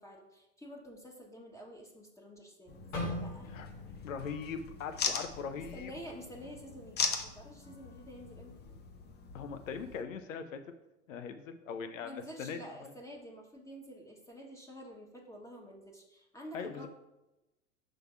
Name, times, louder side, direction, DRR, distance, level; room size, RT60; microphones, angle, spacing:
voice 1, 0.0-3.5 5.5-8.6 12.0-16.9, equal, 10° left, -1 dB, 1.3 m, -49 dB
sound 1, 2.7-10.0, left 6 dB, 25° left, 0.7 m, -40 dB
sound 2, 2.9-7.0 7.3-7.6 8.2-8.6, left 2 dB, 50° left, 2.1 m, -43 dB
voice 2, 4.0-5.9 9.3-10.6 11.1-12.9 16.5-16.9, left 6 dB, 75° left, 9 dB, 0.8 m, -41 dB
5.4 x 3.8 x 5.9 m, 0.97 s
hypercardioid pair, 90°, 39 cm